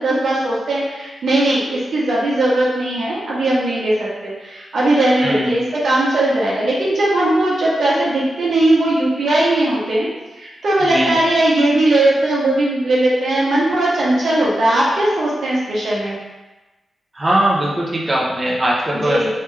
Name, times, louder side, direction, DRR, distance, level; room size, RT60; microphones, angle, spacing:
voice 1, 0.0-3.9 4.2-10.1 10.3-16.1 19.0-19.3, right 1 dB, 75° right, -6 dB, 1.2 m, -18 dB
voice 2, 5.2-5.5 10.8-11.2 17.1-19.3, right 1 dB, 30° right, -5 dB, 0.7 m, -19 dB
3.3 x 3.1 x 3.2 m, 1.1 s
cardioid pair, 60°, 0 cm